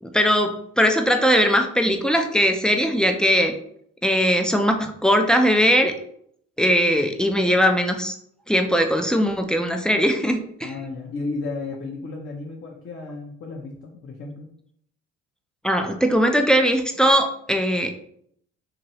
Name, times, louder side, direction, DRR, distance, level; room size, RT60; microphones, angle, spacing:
voice 1, 0.0-3.5 4.0-5.9 6.6-8.2 8.5-10.7 15.6-17.9, equal, ahead, 4 dB, 0.4 m, -20 dB
voice 2, 10.6-14.5, left 3 dB, 40° left, -1 dB, 0.7 m, -33 dB
2.8 x 2.6 x 2.9 m, 0.68 s
supercardioid pair, 70°, 34 cm